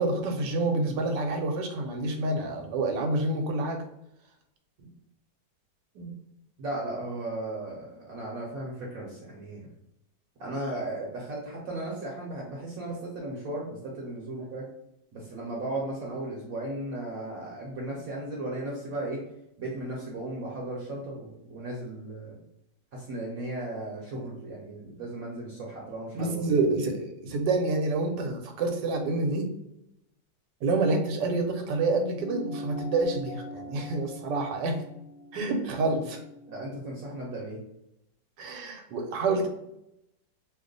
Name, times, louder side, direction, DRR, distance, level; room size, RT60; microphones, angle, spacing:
voice 1, 0.0-3.8 5.9-6.1 26.1-29.5 30.6-34.8 35.3-36.2 38.4-39.5, right 3 dB, 80° right, 4 dB, 1.2 m, -28 dB
voice 2, 6.6-9.7 10.4-14.6 15.1-19.2 19.6-22.4 22.9-26.4 35.8-35.9 36.5-37.6, right 2 dB, 60° right, -3 dB, 1.0 m, -36 dB
sound 1, 32.1-36.9, equal, 70° left, 1.1 m, -42 dB
2.9 x 2.1 x 3.8 m, 0.82 s
omnidirectional pair, 1.9 m